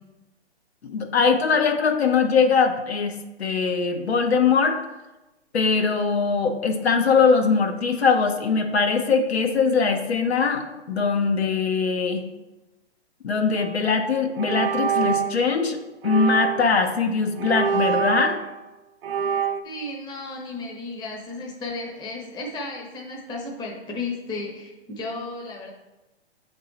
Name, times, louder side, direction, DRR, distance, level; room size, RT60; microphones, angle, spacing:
voice 1, 0.8-4.8 5.5-12.2 13.2-15.8 16.0-18.4, left 5 dB, 75° left, 4 dB, 1.0 m, -21 dB
sound 1, 13.5-13.8 14.4-15.4 16.0-16.8 17.4-18.6 19.0-19.6, right 7 dB, 60° right, 0.5 m, -25 dB
voice 2, 19.6-25.7, left 3 dB, 15° left, -1 dB, 0.8 m, -34 dB
7.0 x 3.7 x 4.0 m, 1.0 s
hypercardioid pair, 130°, 32 cm